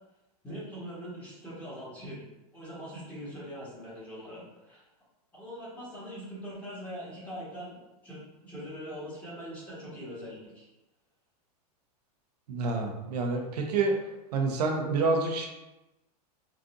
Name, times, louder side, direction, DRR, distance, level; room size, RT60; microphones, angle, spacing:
voice 1, 0.4-2.2 2.5-4.8 5.3-7.8 8.0-10.7, equal, 5° left, -9 dB, 1.4 m, -42 dB
voice 2, 12.5-13.9 14.3-15.5, right 3 dB, 90° right, 2 dB, 0.6 m, -28 dB
3.9 x 2.4 x 2.5 m, 1.0 s
supercardioid pair, 135°, 20 cm